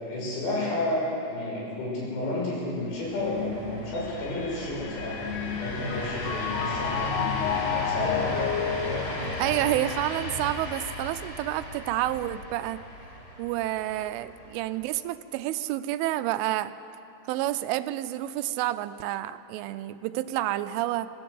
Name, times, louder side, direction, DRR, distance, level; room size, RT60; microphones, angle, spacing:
voice 1, 0.0-8.4, left 2 dB, 60° left, -4 dB, 8.0 m, -31 dB
sound 1, 2.9-14.8, left 1 dB, 30° left, 5.3 m, -36 dB
Mallet percussion, 4.0-10.4, left 9 dB, 85° left, 3.4 m, -32 dB
voice 2, 9.2-12.8 13.4-16.7 17.3-21.1, right 14 dB, 80° right, 12 dB, 3.0 m, -29 dB
23.0 x 15.5 x 8.0 m, 2.7 s
omnidirectional pair, 5.8 m